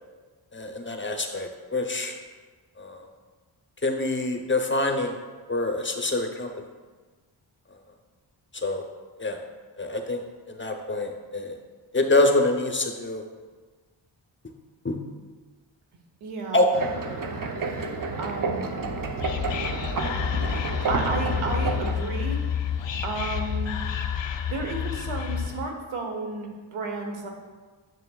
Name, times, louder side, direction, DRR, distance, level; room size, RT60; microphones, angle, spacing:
voice 1, 0.5-2.2 2.8-3.1 3.8-5.2 5.5-6.5 8.5-8.9 9.2-9.4 9.8-11.5 11.9-13.2 14.8-15.0 16.5-16.7, left 2 dB, 25° left, 4 dB, 0.7 m, -25 dB
voice 2, 16.2-16.6 18.2-18.7 20.9-22.4 23.0-23.8 24.5-27.3, right 3 dB, 85° right, 2 dB, 0.9 m, -32 dB
sound 1, 16.7-21.9, right 4 dB, 45° right, 0.7 m, -30 dB
Whispering, 18.8-25.7, left 8 dB, 65° left, 0.6 m, -30 dB
6.7 x 6.5 x 2.3 m, 1.4 s
cardioid pair, 40°, 49 cm